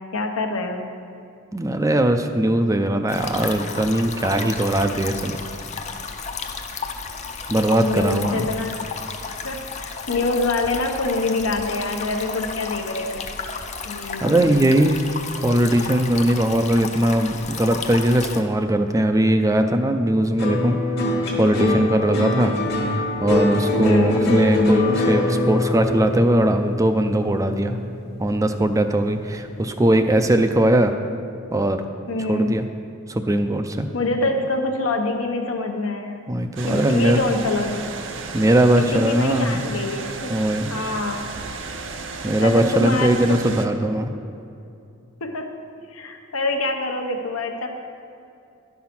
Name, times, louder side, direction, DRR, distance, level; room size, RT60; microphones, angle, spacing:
voice 1, 0.1-0.9 7.8-8.8 9.4-13.3 13.8-14.5 23.8-24.2 32.1-32.5 33.9-36.2 36.6-37.9 38.8-40.3 40.7-41.2 42.4-43.5 45.2-45.5 45.9-47.7, left 2 dB, 80° left, 4 dB, 1.0 m, -25 dB
voice 2, 1.5-5.4 7.5-8.5 14.2-15.1 15.4-20.8 21.4-22.6 22.8-27.8 28.2-30.9 31.5-31.8 32.3-32.7 33.1-33.9 36.3-37.2 38.3-39.7 40.3-40.7 42.2-44.1, right 1 dB, 15° right, 7 dB, 0.4 m, -20 dB
sound 1, 3.1-18.4, left 5 dB, 35° left, 0.6 m, -33 dB
sound 2, 20.4-28.8 29.2-29.8, left 2 dB, 50° left, 1.4 m, -23 dB
sound 3, 36.6-43.7, right 4 dB, 60° right, 0.7 m, -34 dB
11.5 x 5.7 x 5.9 m, 2.6 s
head